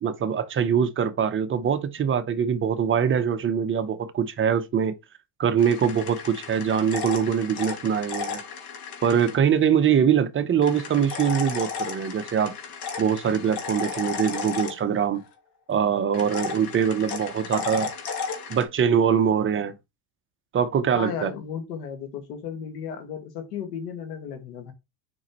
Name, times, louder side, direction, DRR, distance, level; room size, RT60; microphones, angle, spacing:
voice 1, 0.0-4.9 5.4-8.4 9.0-12.5 13.0-15.2 15.7-17.9 18.5-19.7 20.5-21.3, right 7 dB, 25° right, 0.7 m, -23 dB
sound 1, 5.6-9.4 10.6-15.3 16.1-18.7, left 5 dB, 55° left, 2.1 m, -34 dB
voice 2, 20.9-24.7, left 7 dB, 85° left, 1.9 m, -34 dB
7.2 x 5.2 x 3.0 m
supercardioid pair, 110°, 46 cm